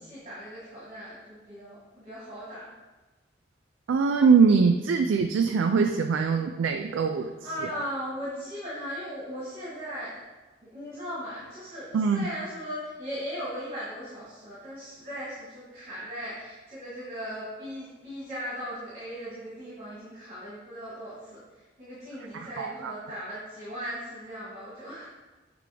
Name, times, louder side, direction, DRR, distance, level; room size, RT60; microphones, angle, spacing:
voice 1, 0.0-2.7 7.4-10.2 10.7-21.4 21.8-25.1, equal, 30° right, -9 dB, 1.8 m, -38 dB
voice 2, 3.9-7.3 11.9-12.3 22.3-22.9, right 5 dB, 90° right, 5 dB, 0.4 m, -22 dB
6.8 x 3.4 x 4.9 m, 1.2 s
head